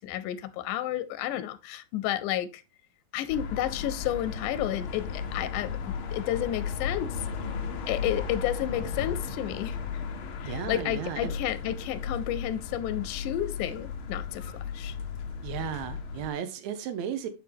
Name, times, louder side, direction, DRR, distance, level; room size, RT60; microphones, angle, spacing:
voice 1, 0.0-2.6 3.1-7.2 7.9-10.0 10.4-14.9, left 12 dB, 90° left, 2.1 m, -31 dB
sound 1, 3.3-16.3, left 6 dB, 70° left, 1.2 m, -35 dB
voice 2, 10.4-11.4 15.4-17.3, right 8 dB, 70° right, 2.1 m, -34 dB
9.8 x 4.6 x 3.4 m
omnidirectional pair, 3.5 m